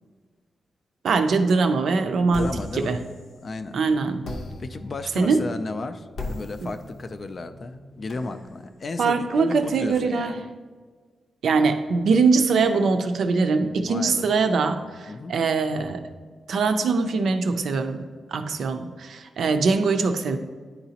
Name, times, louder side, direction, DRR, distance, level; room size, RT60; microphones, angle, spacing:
voice 1, 1.0-3.0 3.7-4.2 5.2-5.4 9.0-10.3 11.4-16.1 16.5-20.4, right 4 dB, 75° right, 7 dB, 0.5 m, -22 dB
sound 1, 2.3-3.7 4.2-10.0, left 1 dB, 80° left, 0.7 m, -39 dB
voice 2, 2.3-3.0 3.4-3.8 4.6-10.4 13.9-14.3 15.1-15.3, left 3 dB, 40° left, 9 dB, 0.3 m, -34 dB
10.0 x 4.0 x 2.8 m, 1.5 s
wide cardioid pair, 140°, 0 cm